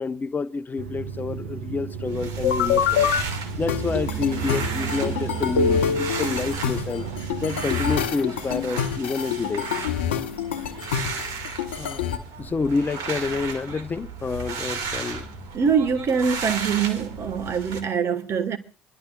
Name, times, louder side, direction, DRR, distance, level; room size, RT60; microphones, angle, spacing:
voice 1, 0.0-3.1 3.6-7.1 7.4-9.7 11.8-12.0 12.4-15.2, left 4 dB, 30° left, 0.9 m, -28 dB
sound 1, 0.8-7.8, right 6 dB, 90° right, 0.9 m, -35 dB
sound 2, 2.1-17.8, right 5 dB, 70° right, 2.0 m, -34 dB
sound 3, 2.4-3.2 3.7-12.2, left 7 dB, 85° left, 0.8 m, -26 dB
voice 2, 15.5-18.6, right 6 dB, 50° right, 1.4 m, -23 dB
27.5 x 11.5 x 2.3 m
hypercardioid pair, 65°, 6 cm